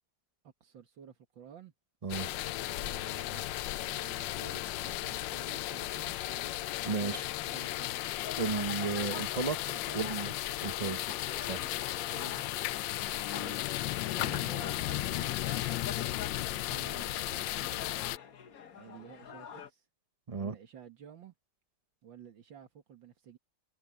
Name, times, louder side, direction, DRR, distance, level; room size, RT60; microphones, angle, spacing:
voice 1, 0.4-1.7 2.6-6.7 7.0-8.2 9.7-10.2 10.6-11.0 12.1-12.5 12.8-13.6 14.1-15.8 16.7-18.0 18.7-19.9 20.3-21.3 22.0-23.4, right 8 dB, 80° right, 2.3 m, -52 dB
sound 1, 2.1-18.2, left 16 dB, 80° left, 1.2 m, -35 dB
voice 2, 6.9-7.2 8.4-9.6 9.9-10.3 10.6-11.0 11.5-11.7 20.3-20.5, right 4 dB, 30° right, 0.7 m, -33 dB
sound 2, 7.9-19.7, left 7 dB, 55° left, 1.5 m, -46 dB
omnidirectional pair, 2.0 m